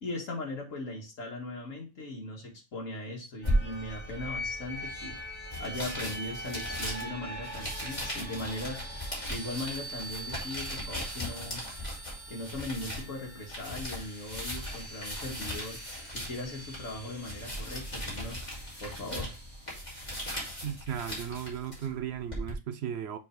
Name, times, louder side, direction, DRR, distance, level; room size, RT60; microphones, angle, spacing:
voice 1, 0.0-5.2 5.6-8.9 9.3-11.6 12.3-15.8 16.1-18.4 18.8-19.3, left 1 dB, 75° left, 2.2 m, -39 dB
sound 1, 3.4-22.5, equal, 30° left, 2.9 m, -38 dB
sound 2, 3.4-20.2, equal, 10° left, 1.7 m, -44 dB
voice 2, 20.6-23.2, right 9 dB, 65° right, 0.7 m, -36 dB
7.0 x 3.6 x 4.5 m
omnidirectional pair, 1.4 m